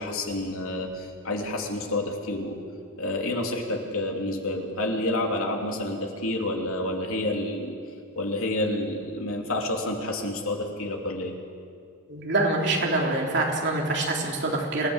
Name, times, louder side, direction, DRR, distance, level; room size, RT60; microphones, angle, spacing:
voice 1, 0.0-2.6 3.0-7.8 8.1-11.3, left 1 dB, 80° left, 2 dB, 3.1 m, -29 dB
voice 2, 12.1-14.9, right 2 dB, 55° right, -1 dB, 3.7 m, -25 dB
27.0 x 17.5 x 8.1 m, 2.3 s
head